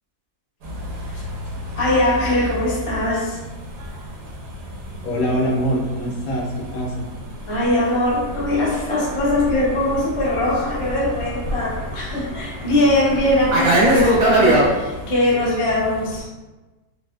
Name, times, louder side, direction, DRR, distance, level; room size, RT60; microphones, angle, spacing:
sound 1, 0.6-16.2, left 1 dB, 90° right, 1.3 m, -35 dB
voice 1, 1.7-3.4 7.5-16.3, left 1 dB, 50° left, -6 dB, 0.3 m, -21 dB
voice 2, 5.0-7.1, equal, 65° left, -4 dB, 1.1 m, -23 dB
Fixed-wing aircraft airplane, 8.2-14.7, right 1 dB, 55° right, 1.0 m, -21 dB
3.2 x 2.6 x 2.3 m, 1.2 s
omnidirectional pair, 1.7 m